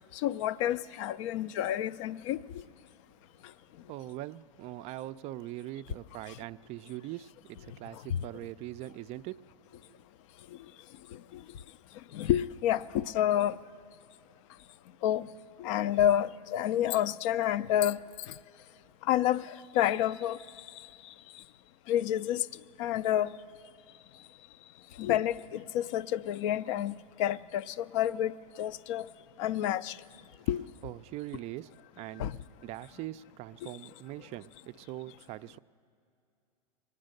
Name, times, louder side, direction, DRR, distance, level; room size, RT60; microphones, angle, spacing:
voice 1, 0.0-2.6 6.3-6.4 7.9-8.2 11.1-11.4 12.1-13.6 15.0-15.3 15.6-18.0 18.3-18.4 19.0-21.4 21.9-22.5 22.8-23.3 25.0-29.1 29.4-30.0 30.5-30.6 32.2-32.4 33.6-33.7, left 11 dB, 55° left, 0.4 m, -29 dB
voice 2, 3.9-9.4 30.8-31.7 32.0-32.3 32.6-35.6, right 15 dB, 35° right, 0.3 m, -42 dB
22.0 x 9.7 x 6.5 m
hypercardioid pair, 115°, 19 cm